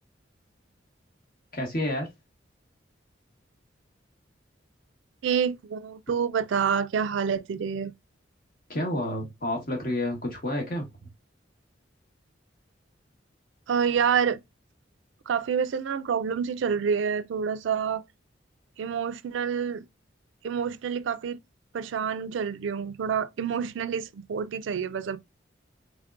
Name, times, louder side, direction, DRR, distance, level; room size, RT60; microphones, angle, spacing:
voice 1, 1.5-2.1 8.7-11.1, left 1 dB, 45° left, 1.2 m, -30 dB
voice 2, 5.2-7.9 13.7-14.4 15.3-18.0 18.8-19.9 20.4-21.4 21.7-25.2, right 7 dB, 75° right, 0.4 m, -27 dB
3.6 x 3.4 x 2.3 m
head